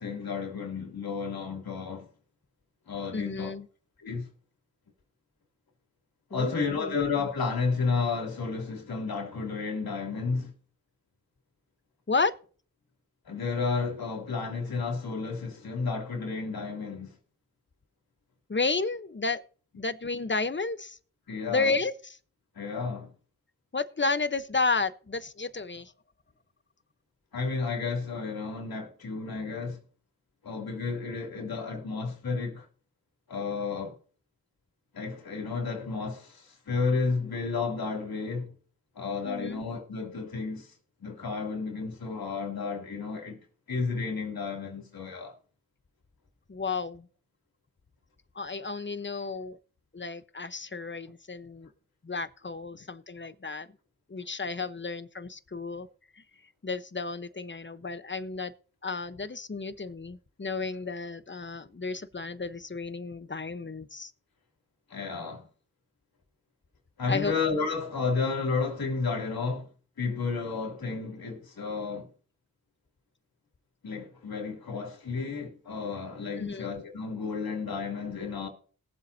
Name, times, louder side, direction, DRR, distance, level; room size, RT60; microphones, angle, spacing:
voice 1, 0.0-2.1 2.9-3.5 4.0-4.3 6.3-10.5 13.2-17.1 21.3-21.7 22.5-23.1 27.3-29.8 30.4-32.7 33.3-34.0 34.9-38.5 38.9-40.7 41.0-43.4 43.7-45.3 64.9-65.5 67.0-69.7 70.0-72.1 73.8-78.5, left 4 dB, 80° left, 3.0 m, -32 dB
voice 2, 3.1-3.7 6.3-7.0 12.1-12.3 18.5-19.4 19.8-21.0 21.5-22.2 23.7-25.9 39.3-39.6 46.5-47.1 48.3-49.6 49.9-51.7 52.0-53.7 54.1-55.9 56.2-56.3 56.6-58.5 58.8-64.1 67.1-67.3 76.4-76.7, left 4 dB, 30° left, 1.0 m, -32 dB
21.0 x 7.7 x 2.8 m
cardioid pair, 50°, 35 cm